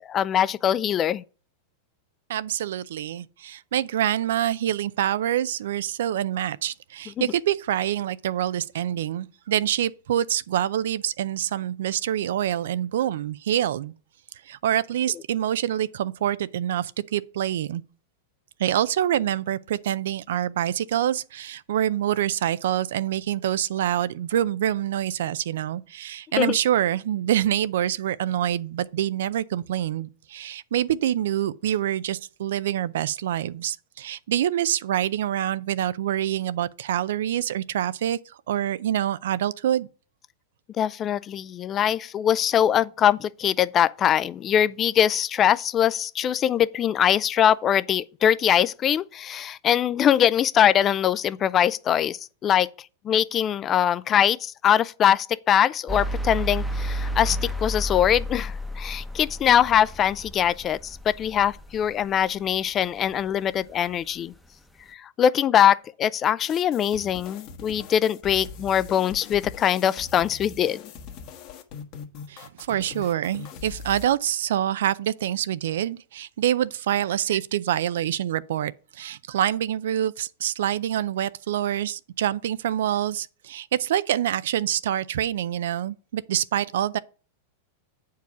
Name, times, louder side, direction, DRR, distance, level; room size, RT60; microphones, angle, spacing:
voice 1, 0.1-1.2 7.2-7.3 26.4-26.6 40.8-52.7 53.0-64.3 64.9-70.8, left 10 dB, 30° left, 0.4 m, -22 dB
voice 2, 2.3-13.9 14.5-17.8 18.6-38.2 38.5-39.9 72.3-87.0, right 11 dB, 75° right, 0.4 m, -26 dB
sound 1, 55.9-62.1, equal, ahead, 0.8 m, -31 dB
sound 2, 66.4-74.1, left 6 dB, 45° left, 1.2 m, -41 dB
8.1 x 4.6 x 6.1 m
hypercardioid pair, 125°, 0 cm